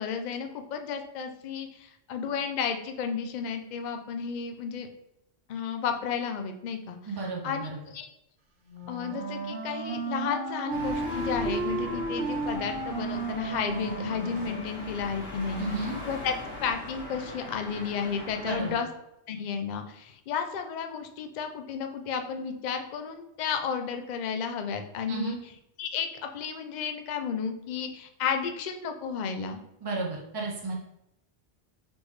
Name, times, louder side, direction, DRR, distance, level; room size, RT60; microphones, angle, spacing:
voice 1, 0.0-4.9 5.5-7.2 7.4-8.1 8.9-16.3 16.6-18.9 19.3-25.4 25.8-29.6, left 6 dB, 60° left, 6 dB, 0.5 m, -32 dB
voice 2, 7.0-7.8 15.6-16.0 18.4-18.8 25.1-25.4 29.8-30.7, right 3 dB, 35° right, -1 dB, 0.4 m, -33 dB
Wind instrument woodwind instrument, 8.7-14.7, right 3 dB, 70° right, 1.0 m, -33 dB
sound 1, 10.7-18.8, left 1 dB, 80° left, 2.0 m, -40 dB
4.1 x 3.4 x 3.1 m, 0.84 s
omnidirectional pair, 1.2 m